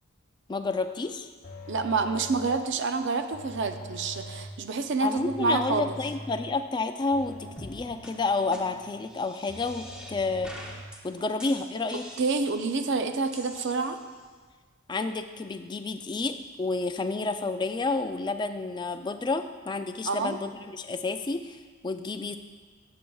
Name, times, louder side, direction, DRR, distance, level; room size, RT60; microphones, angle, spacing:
voice 1, 0.5-1.3 5.0-10.5 11.0-12.0 14.9-22.4, left 3 dB, 20° left, 8 dB, 0.3 m, -30 dB
sound 1, 1.4-2.8 3.3-4.7 5.2-6.6 7.1-9.0 9.5-10.8, left 1 dB, 40° left, 0.7 m, -43 dB
voice 2, 1.7-5.9 12.2-14.0 20.1-20.4, right 4 dB, 60° right, 8 dB, 0.5 m, -28 dB
sound 2, 7.6-7.8 8.0-8.1 8.5-8.6 9.1-10.1 10.4-11.0 11.4-12.8 13.3-14.3, equal, 5° right, 0.8 m, -45 dB
13.0 x 7.5 x 2.3 m, 1.5 s
head